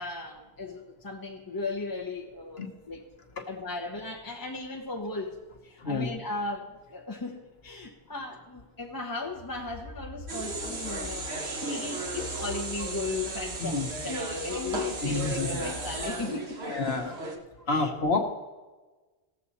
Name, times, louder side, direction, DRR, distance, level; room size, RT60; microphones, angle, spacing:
voice 1, 0.0-3.0 3.5-5.4 5.6-16.8 17.7-17.9, left 3 dB, 20° left, 0 dB, 1.0 m, -36 dB
sound 1, 9.2-16.0, left 4 dB, 15° right, 2.4 m, -45 dB
sound 2, 10.3-17.4, right 2 dB, 80° right, 1.6 m, -35 dB
voice 2, 15.0-15.5 16.6-17.2 17.7-18.2, left 3 dB, 70° left, 4 dB, 1.3 m, -28 dB
18.0 x 7.4 x 4.1 m, 1.2 s
omnidirectional pair, 1.1 m